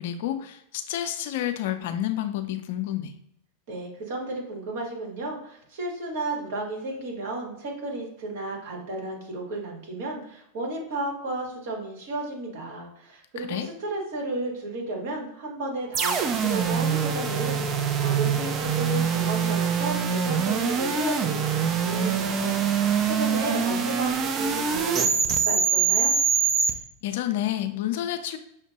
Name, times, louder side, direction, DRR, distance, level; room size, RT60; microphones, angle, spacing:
voice 1, 0.0-3.1 13.4-13.7 27.0-28.4, left 12 dB, 65° left, 8 dB, 0.5 m, -29 dB
voice 2, 3.7-26.1, right 2 dB, 65° right, -1 dB, 1.5 m, -33 dB
sound 1, 15.9-26.7, right 7 dB, 35° right, 0.5 m, -24 dB
6.0 x 2.1 x 2.9 m, 0.74 s
hypercardioid pair, 95°, 0 cm